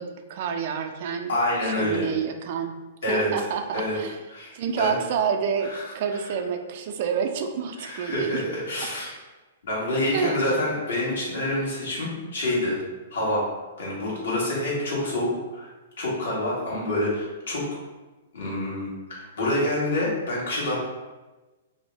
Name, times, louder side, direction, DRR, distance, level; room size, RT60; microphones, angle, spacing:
voice 1, 0.0-1.4 1.6-2.8 3.1-4.2 4.5-8.4 10.1-10.5, right 7 dB, 55° right, 6 dB, 0.3 m, -28 dB
voice 2, 1.3-2.1 3.0-3.4 3.7-4.0 4.3-4.9 5.7-5.8 7.8-9.1 9.6-12.8 13.1-13.4 13.8-15.7 16.0-17.6 18.3-20.7, left 1 dB, 75° left, -6 dB, 1.2 m, -27 dB
2.6 x 2.0 x 3.4 m, 1.2 s
hypercardioid pair, 125°, 0 cm